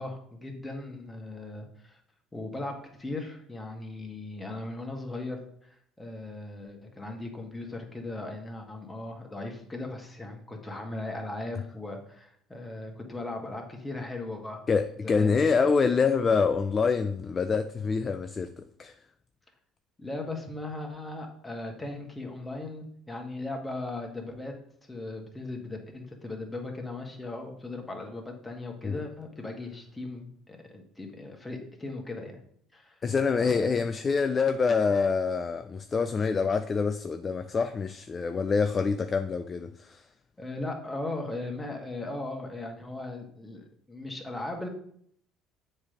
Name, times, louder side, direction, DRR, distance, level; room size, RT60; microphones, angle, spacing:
voice 1, 0.0-2.0 2.3-14.6 15.0-15.5 20.0-24.5 24.8-32.4 32.7-32.9 33.4-34.1 40.4-44.7, left 2 dB, 15° left, 1.7 m, -38 dB
voice 2, 14.7-19.0 28.8-29.0 33.0-40.1, left 5 dB, 35° left, 0.4 m, -26 dB
7.2 x 3.4 x 5.1 m
hypercardioid pair, 65°, 0 cm